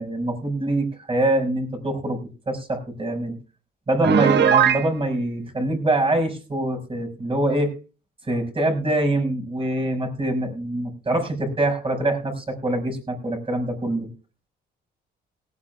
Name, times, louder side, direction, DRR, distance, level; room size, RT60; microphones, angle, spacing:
voice 1, 0.0-3.3 3.9-7.7 8.3-14.1, right 1 dB, 25° right, 3 dB, 5.6 m, -24 dB
Piano, 4.0-4.9, right 8 dB, 60° right, 1.2 m, -17 dB
18.0 x 15.5 x 2.3 m, 0.32 s
cardioid pair, 90°, 20 cm